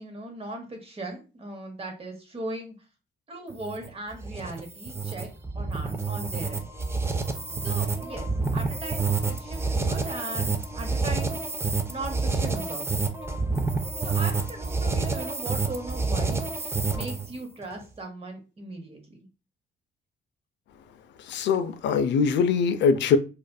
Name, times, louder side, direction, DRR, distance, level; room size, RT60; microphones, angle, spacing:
voice 1, 0.0-2.7 3.3-5.3 5.5-6.7 7.6-8.3 8.5-11.4 11.9-13.2 14.0-19.2, right 2 dB, 30° right, 0.9 m, -38 dB
sound 1, 3.5-17.4, right 4 dB, 15° right, 0.3 m, -28 dB
voice 2, 21.3-23.2, left 6 dB, 65° left, 0.4 m, -22 dB
2.4 x 2.4 x 2.2 m
cardioid pair, 90°, 20 cm